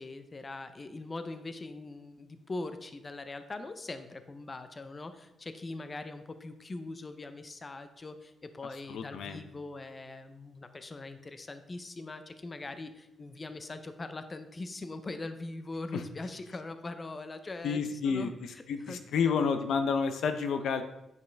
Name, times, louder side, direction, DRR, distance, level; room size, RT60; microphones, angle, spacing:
voice 1, 0.0-19.3, left 2 dB, 30° left, 10 dB, 0.7 m, -42 dB
voice 2, 8.9-9.4 17.6-18.3 18.7-20.8, left 6 dB, 80° left, 8 dB, 0.6 m, -29 dB
9.3 x 5.4 x 3.4 m, 0.89 s
cardioid pair, 80°, 0 cm